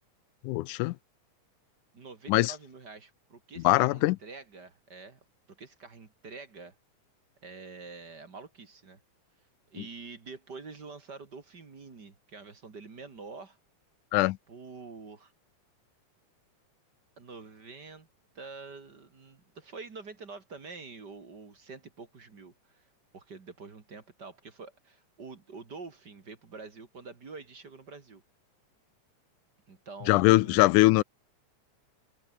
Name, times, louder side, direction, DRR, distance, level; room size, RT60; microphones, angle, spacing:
voice 1, 0.4-0.9 2.3-2.5 3.6-4.2 14.1-14.4 30.1-31.0, left 20 dB, 90° left, 2.1 m, -22 dB
voice 2, 1.9-5.2 5.5-6.7 7.4-9.0 9.7-13.6 14.5-15.3 17.2-18.1 18.3-28.2 29.7-30.7, right 4 dB, 35° right, 2.6 m, -46 dB
omnidirectional pair, 3.5 m